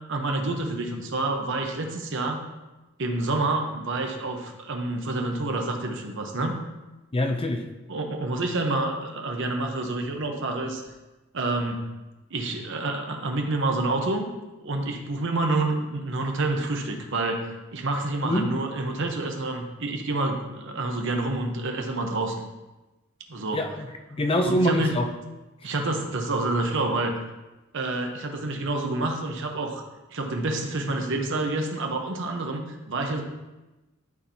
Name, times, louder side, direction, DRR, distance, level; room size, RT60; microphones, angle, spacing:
voice 1, 0.1-2.4 3.0-6.6 7.9-10.8 11.3-11.9 12.3-14.3 14.6-22.4 23.3-23.6 24.4-24.9 25.6-27.1 27.7-29.8 30.1-33.2, right 2 dB, 65° right, 3 dB, 1.0 m, -28 dB
voice 2, 7.1-7.6 18.2-18.5 23.5-25.1, left 1 dB, 25° left, 5 dB, 0.6 m, -25 dB
12.0 x 4.4 x 2.8 m, 1.1 s
head